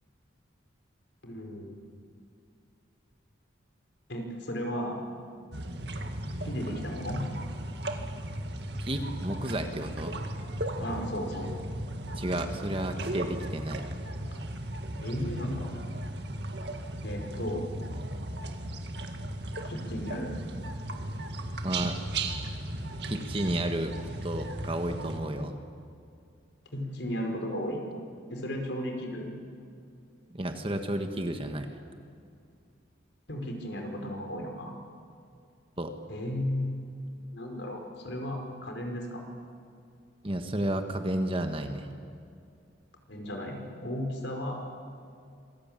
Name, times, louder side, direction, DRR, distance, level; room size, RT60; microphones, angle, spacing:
voice 1, 1.2-1.8 4.1-5.0 6.4-7.2 10.8-11.5 15.0-15.7 17.0-17.7 19.6-20.3 26.7-27.8 28.3-29.3 33.3-34.7 36.1-36.8 37.3-39.2 43.1-44.6, equal, 65° left, 2 dB, 5.0 m, -34 dB
sound 1, 5.5-25.2, right 1 dB, 60° right, 2.1 m, -36 dB
voice 2, 8.8-10.2 12.2-13.9 21.6-22.0 23.0-23.9 24.2-25.5 30.3-31.7 35.8-35.9 40.2-41.9, right 1 dB, 30° right, 6 dB, 1.6 m, -32 dB
26.5 x 21.5 x 8.9 m, 2.4 s
head